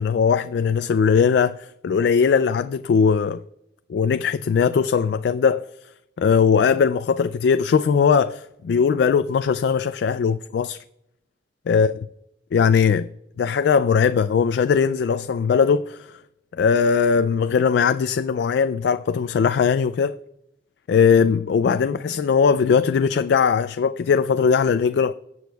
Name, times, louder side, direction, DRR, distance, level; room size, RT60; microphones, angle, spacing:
voice 1, 0.0-3.4 3.9-5.6 6.2-10.8 11.7-11.9 12.5-13.1 13.4-16.1 16.6-20.2 20.9-25.1, left 6 dB, 70° left, 0.3 m, -19 dB
17.0 x 7.8 x 2.3 m
head